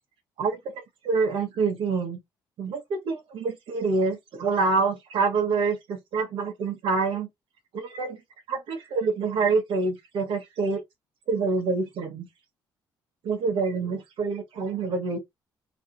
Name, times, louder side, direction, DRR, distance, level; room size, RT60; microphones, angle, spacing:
voice 1, 0.4-0.7 1.0-2.2 2.6-7.3 7.7-8.2 8.5-10.8 11.3-12.3 13.2-15.2, right 4 dB, 70° right, 1.4 m, -26 dB
3.2 x 2.5 x 2.9 m
cardioid pair, 80°, 9 cm